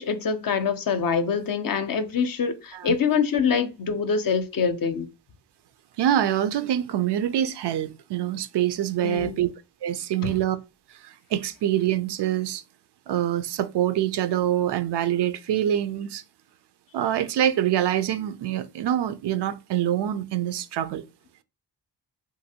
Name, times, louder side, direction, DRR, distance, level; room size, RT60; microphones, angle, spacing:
voice 1, 0.0-5.1 9.0-9.3 10.2-10.3, left 6 dB, 50° left, 0.6 m, -25 dB
voice 2, 6.0-9.5 9.8-10.6 11.0-12.6 13.1-16.2 16.9-21.0, right 11 dB, 65° right, 0.5 m, -25 dB
2.6 x 2.6 x 2.8 m
supercardioid pair, 45°, 46 cm